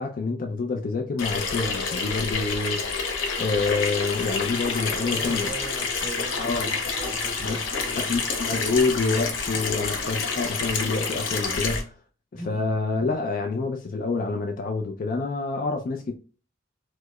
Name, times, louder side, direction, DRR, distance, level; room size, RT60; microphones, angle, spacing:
voice 1, 0.0-3.1 3.4-5.5 6.4-6.7 7.4-7.6 7.9-11.9 12.3-16.1, left 3 dB, 45° left, 0.3 m, -27 dB
Water tap faucet / Sink (filling or washing), 1.2-11.8, left 4 dB, 85° left, 0.6 m, -28 dB
voice 2, 4.7-6.5 6.8-8.3 9.6-9.9 12.3-12.6, right 1 dB, ahead, 1.2 m, -39 dB
4.6 x 2.0 x 2.2 m
head